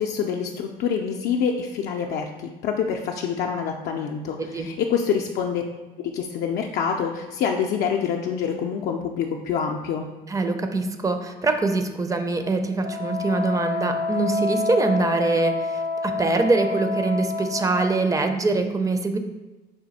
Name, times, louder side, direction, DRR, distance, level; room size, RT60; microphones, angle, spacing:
voice 1, 0.0-5.6 6.0-10.1, left 7 dB, 70° left, 1 dB, 0.4 m, -26 dB
voice 2, 10.3-19.2, right 3 dB, 20° right, 7 dB, 0.4 m, -23 dB
Wind instrument woodwind instrument, 12.8-18.0, left 3 dB, 60° right, 0.9 m, -28 dB
4.9 x 2.6 x 4.1 m, 1.1 s
cardioid pair, 110°, 17 cm